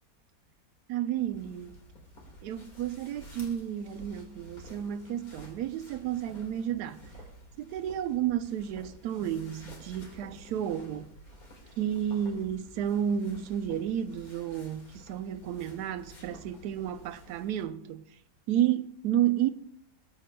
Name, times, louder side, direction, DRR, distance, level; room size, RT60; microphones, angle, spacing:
voice 1, 0.9-1.8 2.4-7.0 7.6-11.1 11.8-18.0 18.5-19.5, right 10 dB, 85° right, 1.1 m, -31 dB
sound 1, 1.2-17.7, equal, 65° left, 2.5 m, -51 dB
18.5 x 8.4 x 2.2 m
omnidirectional pair, 1.7 m